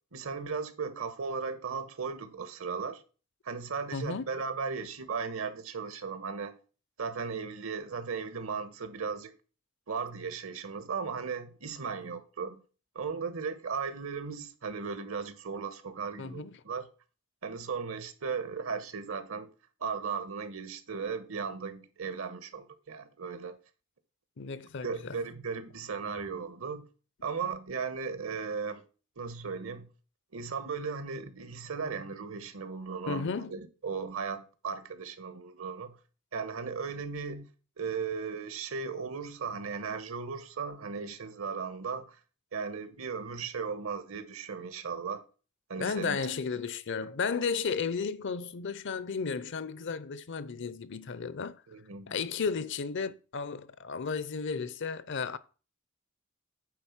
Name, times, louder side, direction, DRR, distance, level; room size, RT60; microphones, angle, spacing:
voice 1, 0.1-3.0 3.4-6.6 7.0-9.3 9.9-12.6 12.9-16.9 17.4-19.5 19.8-23.6 24.8-26.9 27.2-28.8 29.2-29.9 30.3-36.0 36.3-37.5 37.8-42.2 42.5-45.2 45.7-46.2 51.7-52.1, right 5 dB, 75° right, 1.3 m, -36 dB
voice 2, 3.9-4.3 16.2-16.6 24.4-25.2 33.1-33.5 45.8-51.6 52.1-55.4, left 5 dB, 60° left, 0.6 m, -34 dB
9.5 x 3.9 x 7.2 m
head